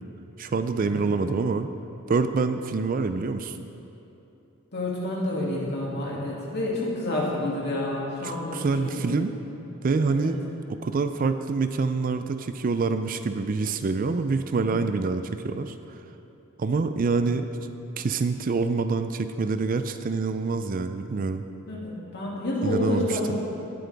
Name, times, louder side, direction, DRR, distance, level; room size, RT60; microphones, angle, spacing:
voice 1, 0.4-1.7 2.1-3.6 8.2-9.3 9.8-10.4 10.8-16.0 16.6-17.5 18.0-21.4 22.6-23.2, right 4 dB, 40° right, 9 dB, 0.4 m, -26 dB
voice 2, 4.7-9.2 10.1-10.3 14.6-14.8 21.7-23.4, left 1 dB, 50° left, -4 dB, 2.3 m, -29 dB
18.0 x 7.8 x 3.5 m, 2.9 s
head